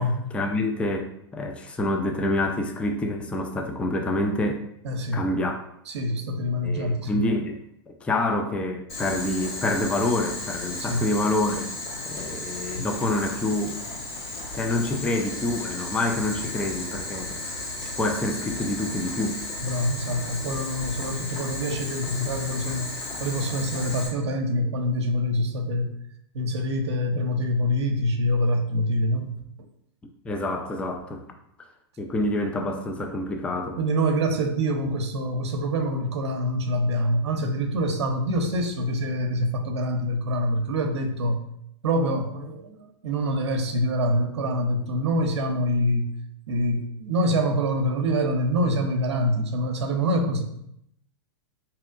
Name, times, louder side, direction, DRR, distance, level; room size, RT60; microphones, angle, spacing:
voice 1, 0.3-4.6 5.1-5.6 6.6-7.6 7.9-11.7 12.0-13.8 14.5-17.6 18.0-19.4 30.2-31.2 32.0-33.8, left 1 dB, 10° left, 4 dB, 0.3 m, -27 dB
voice 2, 4.8-5.2 5.9-7.3 10.8-11.1 12.7-12.9 19.6-22.9 23.2-25.9 26.3-29.4 33.8-41.4 41.8-46.2 46.5-50.4, equal, 85° right, 5 dB, 0.6 m, -25 dB
Boiling, 8.9-24.1, left 2 dB, 50° left, 1.5 m, -34 dB
4.2 x 2.8 x 2.4 m, 0.75 s
hypercardioid pair, 120°, 14 cm